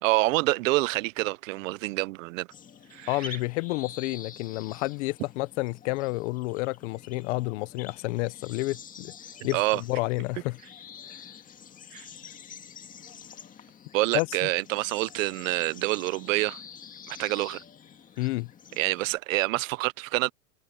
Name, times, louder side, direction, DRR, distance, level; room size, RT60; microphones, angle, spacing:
voice 1, 0.0-2.5 2.9-3.4 9.5-9.8 11.9-12.1 13.9-16.6 17.1-17.6 18.8-20.3, right 21 dB, 60° right, 0.6 m, -27 dB
sound 1, 2.5-19.2, left 7 dB, 20° left, 1.9 m, -47 dB
voice 2, 3.1-9.1 9.4-10.6 14.1-14.3 18.2-18.5, left 22 dB, 55° left, 0.7 m, -30 dB
supercardioid pair, 160°, 45 cm